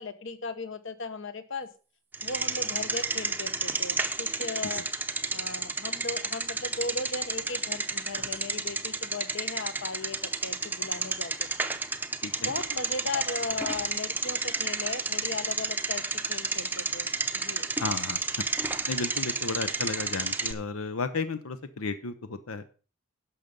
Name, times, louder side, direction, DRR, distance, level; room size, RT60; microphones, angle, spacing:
voice 1, 0.0-1.7 2.2-4.8 5.3-11.7 12.4-16.0 16.3-17.1 17.3-17.7, left 3 dB, 60° left, 12 dB, 1.0 m, -37 dB
Bicycle, 2.1-20.5, right 3 dB, 10° right, 0.6 m, -31 dB
voice 2, 17.8-18.2 18.9-22.7, left 4 dB, 90° left, 11 dB, 0.8 m, -33 dB
11.5 x 6.7 x 5.2 m, 0.36 s
head